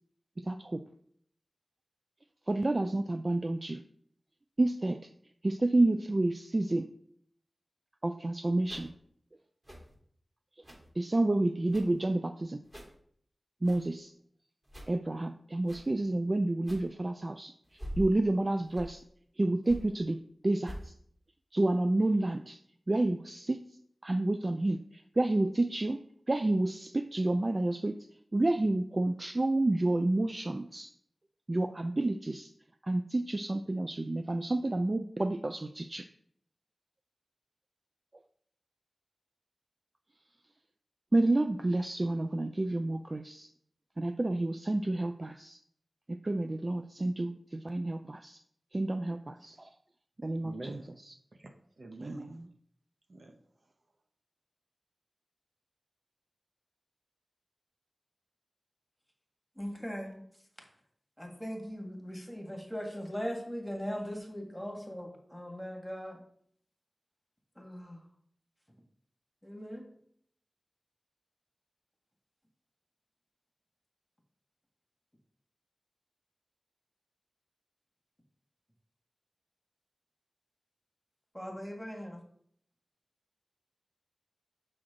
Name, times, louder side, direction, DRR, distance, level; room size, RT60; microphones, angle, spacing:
voice 1, 0.5-0.8 2.5-3.8 4.6-5.0 5.4-6.9 8.0-8.9 11.0-12.6 13.6-14.1 14.9-17.5 18.0-19.0 19.4-20.2 20.4-20.9 21.5-22.6 22.9-23.6 24.0-26.0 26.3-28.0 28.3-30.9 31.5-32.5 32.9-36.0 41.1-43.5 44.0-45.6 46.1-48.4 48.7-49.7 50.2-50.5 52.0-52.3, right 2 dB, 40° right, 8 dB, 0.4 m, -29 dB
sound 1, 8.6-8.9 9.6-9.9 10.6-10.9 11.6-12.0 12.6-13.0 13.6-13.9 14.6-14.9 15.6-15.9 16.6-16.9 17.6-18.2 18.6-19.0 19.6-19.9 20.6-20.9, equal, 25° right, 2.8 m, -44 dB
voice 2, 50.4-50.9 51.3-52.4 53.1-53.4, right 2 dB, 65° right, 5 dB, 0.9 m, -45 dB
voice 3, 59.6-60.2 61.2-66.2 67.6-68.0 69.4-69.8 81.3-82.2, equal, 5° left, 1 dB, 1.8 m, -39 dB
6.3 x 6.0 x 3.8 m, 0.64 s
wide cardioid pair, 55°, 0 cm